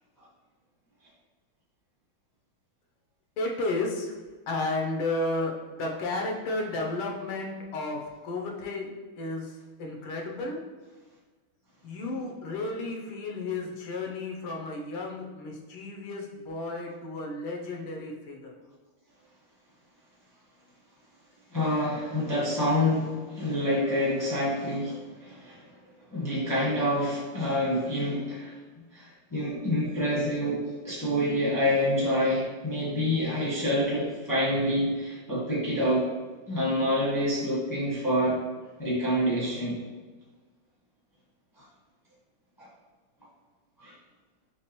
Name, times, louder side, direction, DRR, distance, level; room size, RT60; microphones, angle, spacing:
voice 1, 3.4-4.1 4.5-9.5 9.8-10.6 11.8-18.5, left 2 dB, 85° left, 0 dB, 1.6 m, -33 dB
voice 2, 21.5-25.6 26.1-28.5 28.9-36.0 36.5-38.4 38.8-39.8 43.8-43.9, equal, 20° left, -8 dB, 0.5 m, -27 dB
4.6 x 3.2 x 2.9 m, 1.3 s
omnidirectional pair, 2.3 m